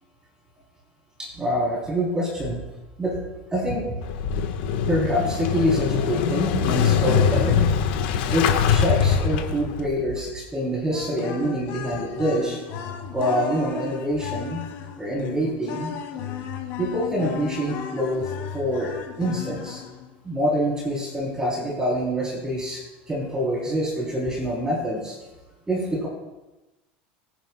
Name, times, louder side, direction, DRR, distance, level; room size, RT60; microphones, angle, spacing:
voice 1, 1.2-2.6 3.0-3.1 3.5-3.8 4.8-7.7 8.3-12.6 13.1-14.6 15.0-15.9 16.8-19.8 20.2-22.8 23.1-25.2 25.7-26.1, equal, 15° right, -4 dB, 3.8 m, -26 dB
Motorcycle / Engine starting, 4.0-9.9, left 8 dB, 75° left, 1.5 m, -22 dB
sound 1, 10.9-20.1, left 7 dB, 60° left, 3.0 m, -34 dB
23.0 x 10.0 x 2.4 m, 1.1 s
supercardioid pair, 120°, 5 cm